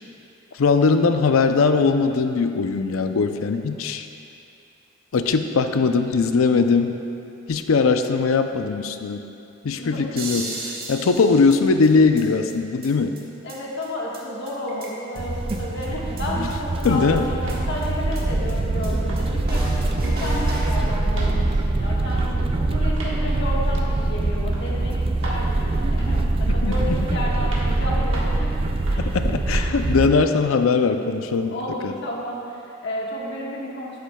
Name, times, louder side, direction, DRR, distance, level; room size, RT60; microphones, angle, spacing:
voice 1, 0.5-4.1 5.1-7.0 7.5-9.2 9.6-10.5 10.9-13.1 16.8-17.3 26.6-26.7 29.0-31.5 31.8-31.9, left 4 dB, 85° left, 7 dB, 0.5 m, -20 dB
voice 2, 9.8-10.2 13.4-19.6 20.0-29.1 31.3-34.0, left 1 dB, 60° left, -4 dB, 1.4 m, -32 dB
sound 1, 10.2-12.2 12.5-12.6 12.8-12.9 13.2-13.3 13.5-13.6 13.8-13.9 14.1-14.2 14.5-15.2 15.5-15.6 15.8-15.9 16.2-16.3 16.5-16.6 16.8-16.9 17.2-17.3 17.5-17.6 17.8-17.9 18.1-18.2 18.5-18.6 18.8-18.9 19.2-19.3 19.5-20.8, right 2 dB, 50° right, 1.5 m, -34 dB
sound 2, 15.2-30.1, right 2 dB, 25° right, 0.3 m, -23 dB
sound 3, 17.4-17.7 18.1-18.4 18.8-19.2 19.5-19.7 20.0-20.7 21.1-21.4 22.1-22.3 23.0-23.2 23.7-23.9 24.5-24.7 25.2-25.4 26.0-26.3 26.7-27.0 27.5-27.7 28.1-28.4 28.9-29.1 29.5-29.7, right 2 dB, 65° right, 1.4 m, -38 dB
12.0 x 9.4 x 2.3 m, 2.7 s
head